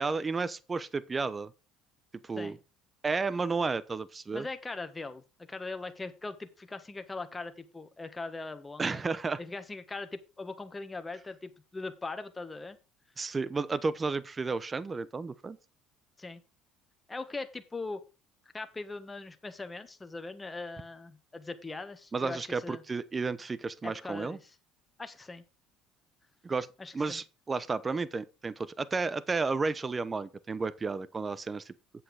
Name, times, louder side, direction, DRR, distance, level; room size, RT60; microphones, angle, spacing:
voice 1, 0.0-1.5 2.2-2.6 3.0-4.5 8.8-9.4 13.2-15.6 22.1-24.4 26.4-26.7 26.9-31.7, right 4 dB, 25° right, 0.8 m, -32 dB
voice 2, 4.3-5.2 5.5-9.0 9.4-12.8 16.2-16.4 17.1-18.0 18.5-22.8 23.8-24.5 25.0-25.4 26.8-27.2, left 3 dB, 20° left, 1.5 m, -40 dB
8.5 x 7.6 x 4.8 m
supercardioid pair, 85°, 0 cm